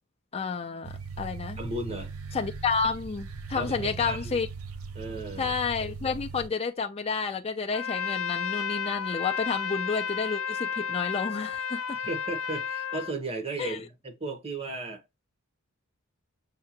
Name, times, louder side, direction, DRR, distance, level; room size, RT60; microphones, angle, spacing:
voice 1, 0.3-1.6 2.3-4.5 5.4-12.0 13.6-13.8, left 5 dB, 30° left, 0.4 m, -30 dB
sound 1, 0.8-6.5, right 4 dB, 80° right, 0.6 m, -39 dB
voice 2, 1.6-2.1 3.5-4.4 4.9-5.5 11.9-15.0, right 2 dB, 30° right, 1.3 m, -35 dB
Trumpet, 7.7-13.1, left 7 dB, 85° left, 0.8 m, -32 dB
6.5 x 2.5 x 2.8 m
head